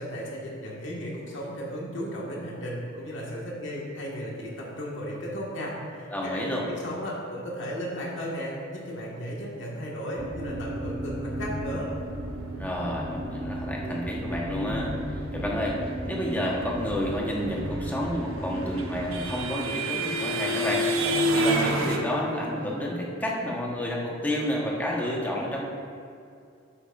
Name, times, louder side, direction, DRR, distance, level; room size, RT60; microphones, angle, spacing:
voice 1, 0.0-11.9, equal, 60° left, -4 dB, 1.9 m, -35 dB
voice 2, 6.1-6.7 12.6-15.8 16.1-25.7, equal, 10° left, -3 dB, 1.3 m, -30 dB
sound 1, 10.2-19.4, right 1 dB, 45° right, 1.0 m, -34 dB
sound 2, 18.1-22.0, right 1 dB, 85° right, 0.9 m, -27 dB
11.0 x 8.6 x 2.6 m, 2.4 s
head